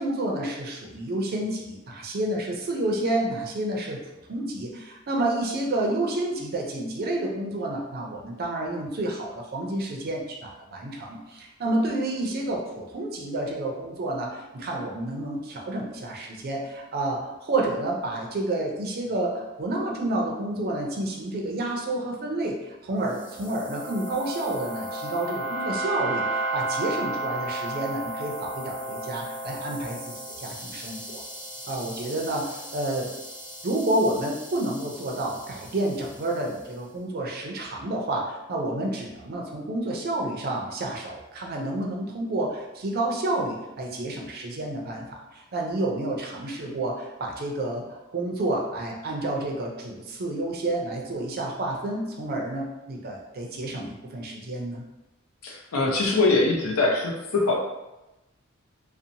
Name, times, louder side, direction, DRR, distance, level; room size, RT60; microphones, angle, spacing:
voice 1, 0.0-4.0 4.3-31.2 31.7-33.1 33.6-54.8, right 1 dB, 45° right, 0 dB, 0.4 m, -29 dB
sound 1, 23.1-36.5, right 1 dB, 20° left, 0.7 m, -34 dB
voice 2, 55.4-57.6, left 3 dB, 80° left, -1 dB, 0.6 m, -23 dB
2.8 x 2.0 x 2.6 m, 0.99 s
head